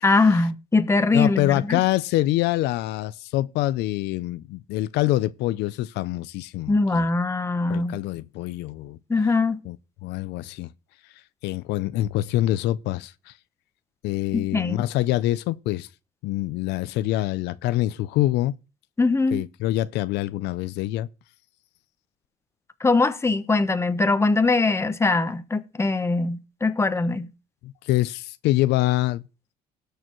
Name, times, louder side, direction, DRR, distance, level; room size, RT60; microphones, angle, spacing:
voice 1, 0.0-1.8 6.7-8.0 9.1-9.6 14.3-14.8 19.0-19.4 22.8-27.3, left 3 dB, 15° left, 1.0 m, -22 dB
voice 2, 1.1-7.0 7.7-9.0 9.7-9.8 10.0-10.7 11.4-13.3 14.0-15.9 16.2-18.5 19.3-21.1 27.6-29.2, left 15 dB, 85° left, 0.5 m, -25 dB
19.0 x 6.7 x 3.0 m
cardioid pair, 110°, 17 cm